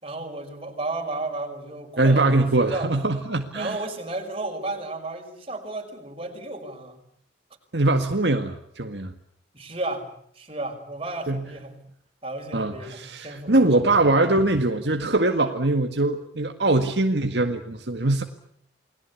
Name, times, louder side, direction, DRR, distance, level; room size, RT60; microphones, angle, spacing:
voice 1, 0.0-2.9 3.5-7.0 9.5-10.1 10.4-11.7 12.2-14.0, right 2 dB, 30° right, 4 dB, 5.7 m, -33 dB
voice 2, 2.0-3.8 7.7-9.1 11.3-11.4 12.5-18.2, right 2 dB, 70° right, 5 dB, 1.9 m, -22 dB
29.5 x 20.5 x 8.5 m, 0.67 s
head